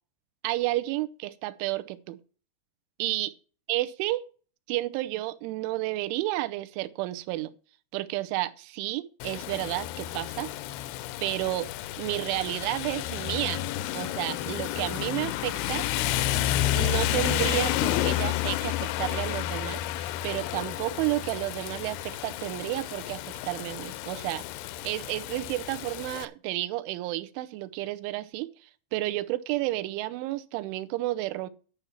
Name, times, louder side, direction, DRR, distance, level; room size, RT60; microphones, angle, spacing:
voice 1, 0.4-2.2 3.0-3.3 3.7-4.2 4.7-7.5 7.9-10.5 11.2-11.7 12.0-13.6 13.9-15.9 16.7-24.4 24.8-31.5, right 17 dB, 90° right, 3.1 m, -31 dB
Rain, 9.2-26.3, left 14 dB, 85° left, 2.3 m, -31 dB
10.5 x 5.8 x 7.1 m
omnidirectional pair, 5.3 m